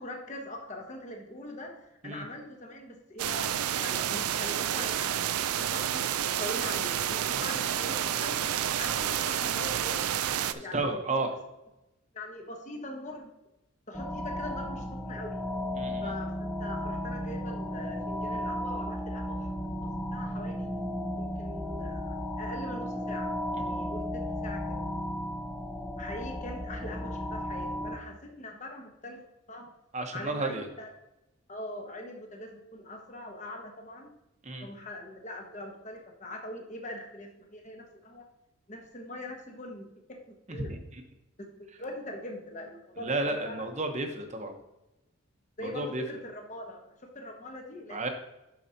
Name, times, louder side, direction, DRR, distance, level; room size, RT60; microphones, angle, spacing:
voice 1, 0.0-3.5 3.8-6.1 6.3-8.5 8.8-11.2 12.1-13.3 13.9-15.4 16.0-19.6 19.8-20.7 21.2-24.8 26.0-29.2 29.5-29.7 30.1-30.9 31.5-34.1 34.6-38.3 38.7-40.7 41.4-43.7 45.6-48.0, left 1 dB, 35° left, 2 dB, 1.1 m, -42 dB
sound 1, 3.2-10.5, right 10 dB, 90° right, 0.4 m, -29 dB
voice 2, 10.5-11.3 15.8-16.1 29.9-30.7 34.4-34.7 40.7-40.8 43.0-44.6 45.6-46.0 47.9-48.1, right 2 dB, 30° right, 5 dB, 0.9 m, -32 dB
sound 2, 13.9-28.0, equal, 5° left, 0.6 m, -34 dB
12.0 x 4.8 x 2.8 m, 0.93 s
head